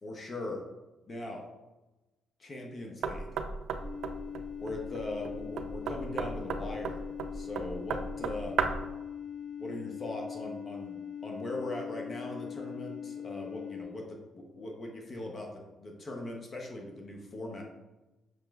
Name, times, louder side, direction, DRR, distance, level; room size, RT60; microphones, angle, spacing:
voice 1, 0.0-0.6 1.1-1.4 2.4-3.4 4.6-7.0 7.3-8.6 9.6-17.6, left 2 dB, 40° left, 1 dB, 0.7 m, -40 dB
Knock, 3.0-8.9, right 5 dB, 75° right, 0.3 m, -35 dB
sound 1, 3.7-13.8, left 8 dB, 80° left, 1.3 m, -41 dB
5.8 x 3.0 x 2.3 m, 1.1 s
cardioid pair, 90°, 0 cm